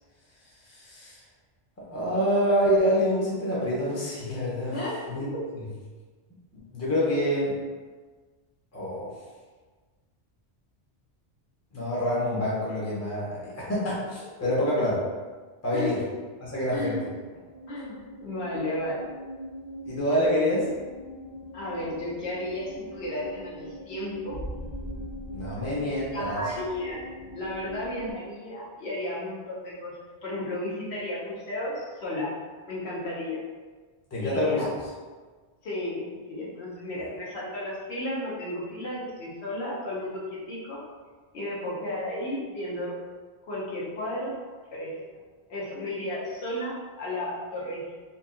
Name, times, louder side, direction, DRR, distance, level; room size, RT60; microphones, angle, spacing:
voice 1, 0.6-1.2 1.9-4.8 5.1-5.3 6.7-7.5 8.7-9.1 11.7-15.0 15.6-16.0 16.4-17.1 19.8-20.7 25.3-26.4 34.1-34.7 37.0-37.1, equal, 20° left, -8 dB, 0.6 m, -26 dB
voice 2, 4.7-5.4 15.7-15.9 16.7-17.0 17.7-19.0 21.5-24.4 26.1-27.0 27.3-32.3 32.7-33.4 34.2-34.7 35.6-40.8 41.3-42.9 43.5-44.3 44.7-44.9 45.5-48.0, left 1 dB, 75° left, -6 dB, 1.0 m, -33 dB
sound 1, 17.1-28.1, equal, 30° right, 0.5 m, -42 dB
2.7 x 2.5 x 2.4 m, 1.4 s
omnidirectional pair, 1.1 m